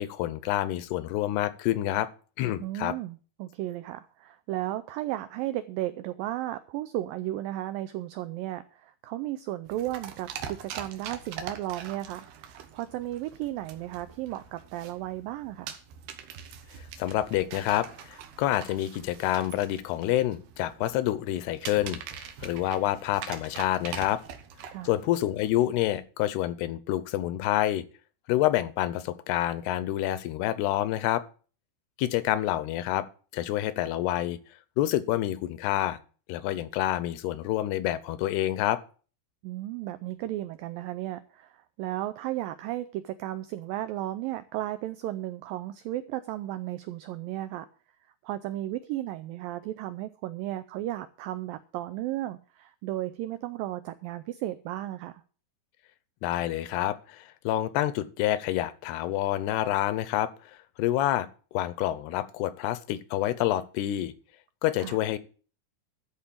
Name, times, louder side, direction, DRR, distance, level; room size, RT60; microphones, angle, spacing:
voice 1, 0.0-2.1 2.4-2.9 17.0-24.2 24.8-27.8 28.3-31.2 32.0-33.1 33.3-34.4 34.8-36.0 36.3-38.8 56.2-60.3 60.8-61.3 61.5-64.1 64.6-65.2, left 14 dB, 80° left, 15 dB, 2.7 m, -28 dB
voice 2, 2.6-15.8 24.7-24.9 39.4-47.7 48.2-55.2 64.8-65.0, right 14 dB, 90° right, 12 dB, 2.0 m, -34 dB
sound 1, 9.7-26.0, right 8 dB, 70° right, 2.9 m, -44 dB
13.5 x 4.5 x 8.5 m, 0.40 s
omnidirectional pair, 4.7 m